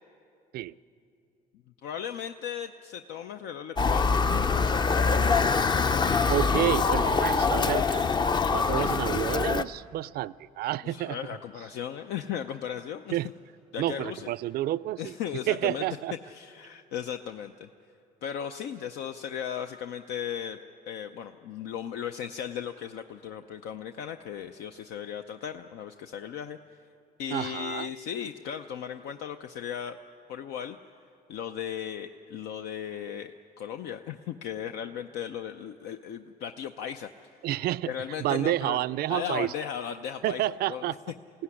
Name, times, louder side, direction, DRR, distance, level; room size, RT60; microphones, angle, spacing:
voice 1, 1.8-4.6 8.6-8.9 10.8-13.2 13.7-14.3 15.0-15.9 16.3-17.7 18.2-20.6 20.9-26.6 27.2-30.0 30.3-30.8 31.3-33.3 33.6-37.3 37.9-38.8 39.1-40.4 40.7-40.9, left 9 dB, 80° left, 7 dB, 0.7 m, -36 dB
Motor vehicle (road) / Siren, 3.8-9.6, left 4 dB, 25° left, 0.5 m, -24 dB
voice 2, 6.3-8.1 8.5-11.2 13.1-13.3 13.8-15.1 15.5-16.1 27.3-27.9 37.4-37.9 38.2-39.5 40.2-41.0, right 14 dB, 65° right, 19 dB, 0.4 m, -29 dB
22.5 x 16.5 x 9.8 m, 2.5 s
cardioid pair, 110°, 17 cm